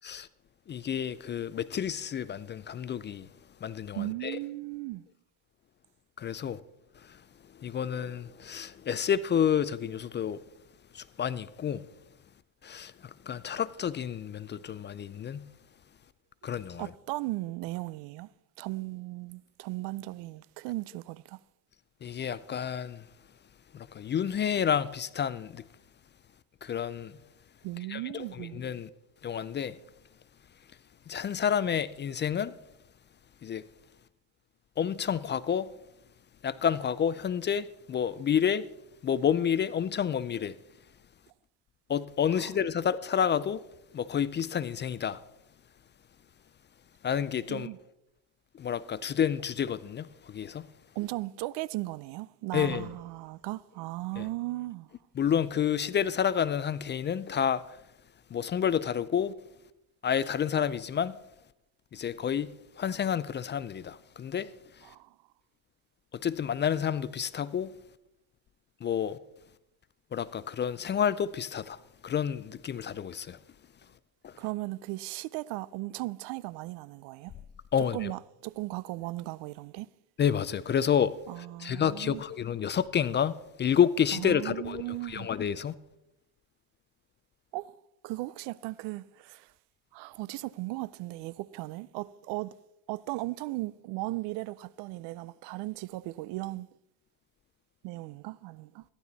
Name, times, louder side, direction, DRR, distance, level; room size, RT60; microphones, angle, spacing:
voice 1, 0.7-3.3 3.6-4.4 6.2-6.6 7.6-10.4 10.9-11.8 12.6-12.9 13.3-15.4 16.4-16.9 22.0-23.0 23.7-25.6 26.6-27.1 27.9-28.9 29.2-29.7 31.1-32.5 33.4-33.6 34.8-35.7 36.4-38.7 39.0-40.5 41.9-43.6 43.9-45.2 47.0-47.7 48.6-50.7 52.5-52.9 54.2-54.3 55.2-57.6 58.3-59.3 60.0-61.2 61.9-62.5 62.8-64.5 66.2-67.7 68.8-69.2 70.1-71.8 72.0-73.4 74.2-74.3 77.7-78.1 80.2-81.1 81.6-83.3 83.6-85.7, left 8 dB, 25° left, 0.4 m, -29 dB
voice 2, 3.9-5.0 16.8-18.3 18.6-21.4 27.6-28.6 42.3-42.5 47.5-47.8 51.0-54.9 64.8-65.1 74.4-77.3 77.8-79.9 81.3-82.2 84.1-85.3 87.5-87.8 88.0-89.5 89.9-92.5 92.9-96.7 97.8-98.8, right 19 dB, 70° right, 0.6 m, -37 dB
14.5 x 11.5 x 4.0 m
cardioid pair, 110°, 42 cm